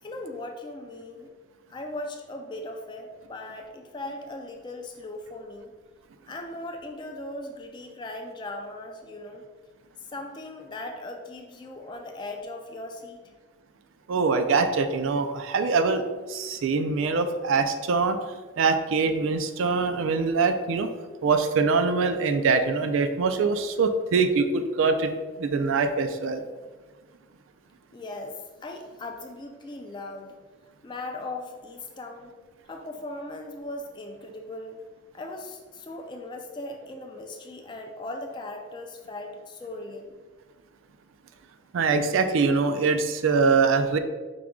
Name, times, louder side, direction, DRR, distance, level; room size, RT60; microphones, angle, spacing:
voice 1, 0.0-1.3 1.7-5.7 6.3-9.4 10.0-13.2 27.9-30.4 30.8-32.3 32.7-34.8 35.1-40.2, left 2 dB, 20° left, 3 dB, 0.3 m, -38 dB
voice 2, 14.1-18.2 18.6-20.9 21.2-25.1 25.4-26.4 41.7-44.0, right 4 dB, 70° right, 8 dB, 0.3 m, -23 dB
4.9 x 2.3 x 3.5 m, 1.3 s
head